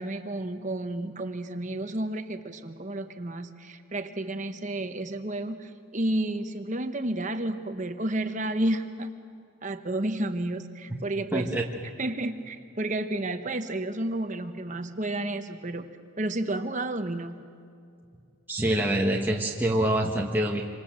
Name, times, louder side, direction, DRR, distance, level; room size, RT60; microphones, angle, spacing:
voice 1, 0.0-9.1 9.6-11.6 12.0-15.9 16.2-17.5, right 1 dB, 35° right, 8 dB, 1.0 m, -31 dB
voice 2, 11.3-11.6 18.5-20.6, right 1 dB, 10° right, -1 dB, 1.4 m, -25 dB
27.0 x 25.5 x 7.5 m, 2.4 s
head